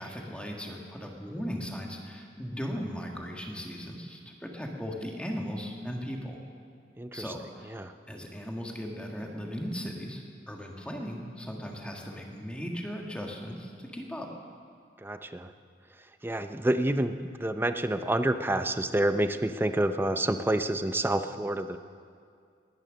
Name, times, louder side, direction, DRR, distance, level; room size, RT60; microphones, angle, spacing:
voice 1, 0.0-6.4 7.1-7.7 8.1-14.3, equal, 5° left, 0 dB, 1.7 m, -37 dB
voice 2, 7.0-7.3 7.7-7.9 15.0-15.5 16.2-17.1 17.4-21.8, right 1 dB, 15° right, 9 dB, 0.6 m, -28 dB
19.5 x 11.0 x 6.4 m, 2.2 s
head